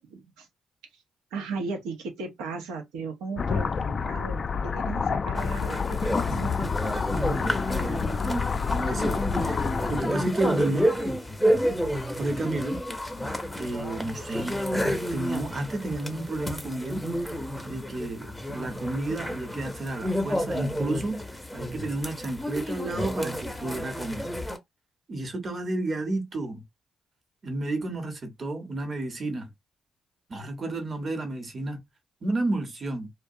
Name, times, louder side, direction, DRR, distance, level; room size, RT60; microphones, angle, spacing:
voice 1, 0.0-0.5 0.9-1.0 1.3-6.5, right 4 dB, 90° right, 0.7 m, -36 dB
sound 1, 3.4-10.0, left 5 dB, 45° left, 0.3 m, -28 dB
sound 2, 5.4-24.6, equal, 5° left, 0.6 m, -30 dB
voice 2, 7.1-10.9 12.2-12.8 13.6-14.6 15.1-17.3 17.6-24.3 25.1-26.6 27.4-29.5 30.3-31.8 32.2-33.1, right 2 dB, 45° right, 0.9 m, -31 dB
2.3 x 2.0 x 2.6 m
supercardioid pair, 55°, 0 cm